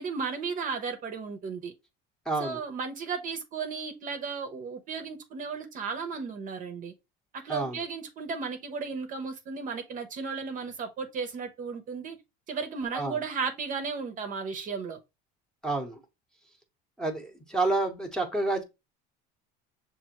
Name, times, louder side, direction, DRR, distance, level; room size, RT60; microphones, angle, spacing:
voice 1, 0.0-1.7 2.4-6.9 7.3-12.2 12.5-15.0, right 5 dB, 40° right, 0.7 m, -34 dB
voice 2, 2.3-2.6 7.5-7.8 12.9-13.2 15.6-16.0 17.0-18.6, right 2 dB, 5° left, 0.9 m, -29 dB
6.0 x 2.6 x 2.9 m
supercardioid pair, 115°, 20 cm